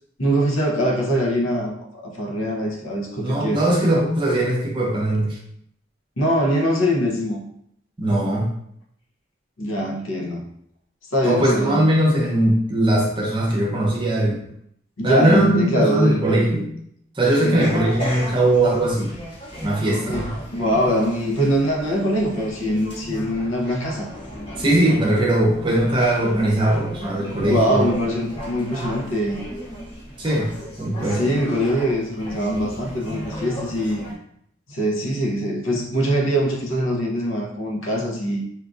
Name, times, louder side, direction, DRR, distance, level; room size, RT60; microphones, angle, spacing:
voice 1, 0.2-1.8 2.0-3.6 6.2-7.4 9.6-10.4 11.1-11.9 15.0-16.6 17.4-17.7 20.1-24.1 27.4-29.4 31.0-34.1 34.7-38.4, equal, 80° left, 0 dB, 0.7 m, -23 dB
voice 2, 3.2-5.4 8.0-8.5 11.2-14.4 15.0-16.7 17.2-19.2 19.6-20.3 24.6-27.9 30.2-30.5 30.8-31.3, right 1 dB, 25° right, -3 dB, 0.7 m, -20 dB
sound 1, 17.6-34.1, equal, 25° left, 0.7 m, -35 dB
4.4 x 2.4 x 2.5 m, 0.70 s
head